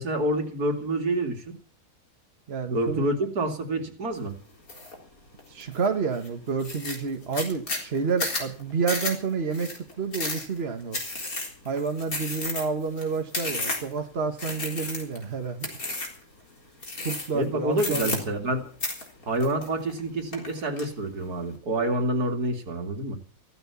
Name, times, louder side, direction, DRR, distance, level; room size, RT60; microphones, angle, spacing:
voice 1, 0.0-1.5 2.7-4.4 17.3-18.7 19.3-23.2, right 1 dB, 75° right, 5 dB, 3.0 m, -27 dB
voice 2, 2.5-3.1 5.5-11.0 11.6-15.7 17.0-18.1, right 5 dB, 45° right, 6 dB, 1.6 m, -29 dB
sound 1, 4.7-4.9 5.4-5.9 6.2-6.3 6.6-14.0 14.4-15.2 15.6-16.2 16.8-17.4 17.7-18.5 18.8-20.0 20.3-20.9, left 2 dB, 65° left, 4.4 m, -32 dB
15.0 x 13.0 x 7.0 m, 0.41 s
omnidirectional pair, 1.6 m